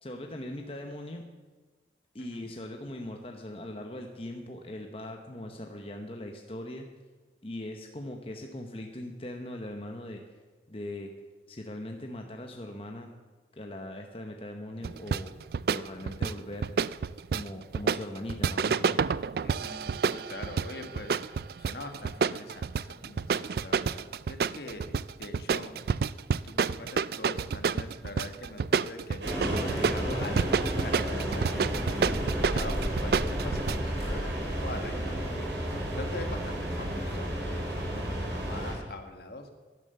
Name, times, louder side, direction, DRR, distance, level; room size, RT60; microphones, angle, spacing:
voice 1, 0.0-1.2 2.1-6.9 7.4-10.2 10.7-11.1 11.5-13.1 13.5-15.3 15.7-16.7 17.3-19.0, left 1 dB, 30° left, 3 dB, 0.9 m, -40 dB
voice 2, 2.2-2.5 19.4-26.0 26.4-39.6, left 2 dB, 60° left, 6 dB, 1.5 m, -43 dB
sound 1, 14.8-33.8, right 5 dB, 55° right, 0.3 m, -29 dB
sound 2, 29.2-38.7, right 1 dB, 70° right, 3.6 m, -31 dB
12.0 x 11.0 x 6.9 m, 1.3 s
head